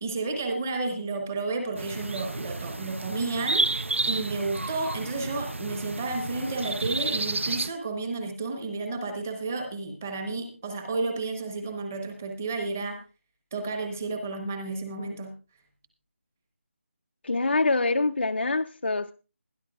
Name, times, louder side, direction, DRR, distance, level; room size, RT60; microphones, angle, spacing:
voice 1, 0.0-3.8 4.0-13.0 13.5-15.3, right 3 dB, 10° right, 5 dB, 1.0 m, -31 dB
sound 1, 1.8-7.7, right 2 dB, 65° right, 0.8 m, -31 dB
voice 2, 17.2-19.1, left 3 dB, 55° left, 8 dB, 0.5 m, -25 dB
20.5 x 10.5 x 2.4 m, 0.32 s
figure-of-eight pair, 180°, 7 cm